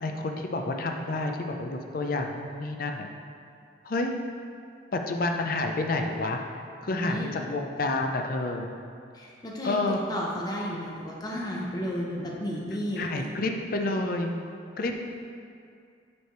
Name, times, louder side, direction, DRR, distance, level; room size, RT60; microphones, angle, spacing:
voice 1, 0.0-3.1 3.8-4.1 4.9-6.4 6.8-8.7 9.6-10.0 13.0-14.3 14.8-14.9, left 2 dB, 50° left, 4 dB, 0.5 m, -29 dB
voice 2, 6.9-7.3 9.1-9.8 10.1-13.3 14.9-15.1, equal, 20° left, -3 dB, 0.7 m, -33 dB
6.8 x 3.3 x 4.5 m, 2.4 s
head